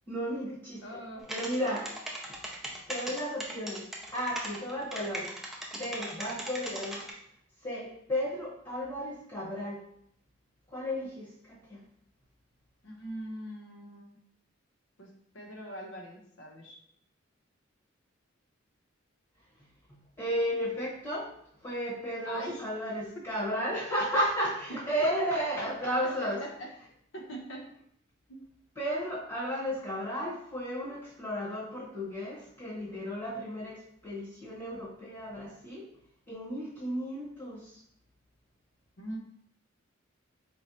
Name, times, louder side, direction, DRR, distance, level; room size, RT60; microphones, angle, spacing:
voice 1, 0.1-1.0 1.3-1.9 2.9-3.9 4.1-5.3 5.7-7.0 7.6-9.8 10.7-11.8 19.9-21.3 21.6-26.4 28.7-35.9 36.3-37.8, equal, 25° left, -8 dB, 1.2 m, -34 dB
voice 2, 0.8-1.2 1.6-2.0 12.8-14.2 15.0-15.1 15.3-16.8 22.2-22.6 25.6-25.9 26.2-27.6 28.3-28.4 39.0-39.2, equal, 70° left, 0 dB, 0.8 m, -42 dB
sound 1, 1.2-7.1, right 1 dB, ahead, 0.5 m, -38 dB
4.5 x 3.0 x 2.8 m, 0.68 s
head